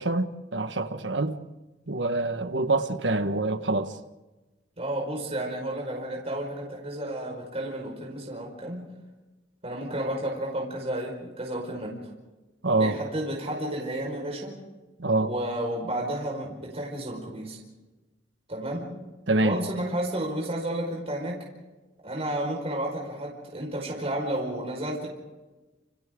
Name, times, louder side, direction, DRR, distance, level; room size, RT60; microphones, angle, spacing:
voice 1, 0.0-1.4 1.9-3.9 12.6-13.0 15.0-15.3 19.3-19.6, right 2 dB, 90° right, 1.5 m, -25 dB
voice 2, 4.8-8.9 9.6-11.9 12.7-14.6 15.2-17.6 18.5-19.0 19.4-21.5 22.0-25.1, right 1 dB, 35° right, 5.3 m, -32 dB
29.5 x 29.0 x 3.9 m
head